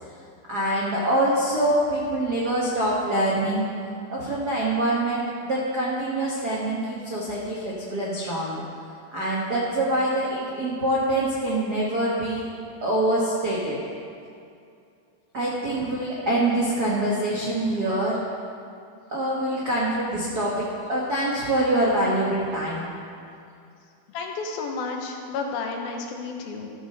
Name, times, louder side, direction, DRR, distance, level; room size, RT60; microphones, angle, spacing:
voice 1, 0.5-3.6 4.1-8.6 9.1-12.5 12.8-13.8 15.3-18.2 19.1-22.9, right 1 dB, 65° right, -6 dB, 0.9 m, -25 dB
voice 2, 24.1-26.7, left 4 dB, 80° left, 2 dB, 2.8 m, -31 dB
13.5 x 6.1 x 6.6 m, 2.5 s
omnidirectional pair, 4.3 m